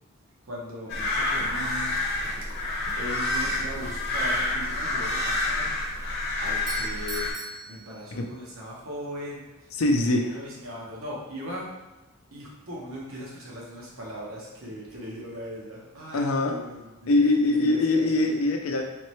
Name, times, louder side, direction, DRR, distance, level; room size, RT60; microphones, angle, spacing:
voice 1, 0.5-2.0 2.5-5.8 6.1-7.3 7.7-11.7 12.3-17.1 17.5-18.3, equal, 75° right, -4 dB, 1.1 m, -39 dB
sound 1, 0.9-7.3, left 2 dB, 50° left, 1.0 m, -28 dB
Doorbell, 6.4-8.6, right 2 dB, 20° right, 0.4 m, -40 dB
voice 2, 9.7-10.4 16.1-16.6 17.1-18.8, left 2 dB, 75° left, 3 dB, 0.5 m, -23 dB
3.6 x 3.1 x 3.1 m, 1.1 s
head